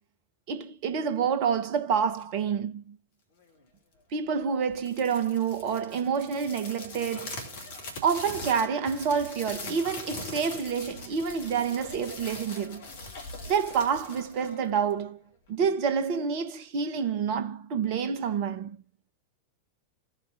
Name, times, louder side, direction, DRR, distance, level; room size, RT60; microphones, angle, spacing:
voice 1, 0.5-3.0 4.1-7.4 8.0-12.9 13.5-15.2 15.5-18.8, right 6 dB, 45° right, 0.9 m, -28 dB
sound 1, 4.7-15.1, left 2 dB, 55° left, 1.8 m, -41 dB
15.0 x 5.0 x 2.6 m
figure-of-eight pair, 90°, 0 cm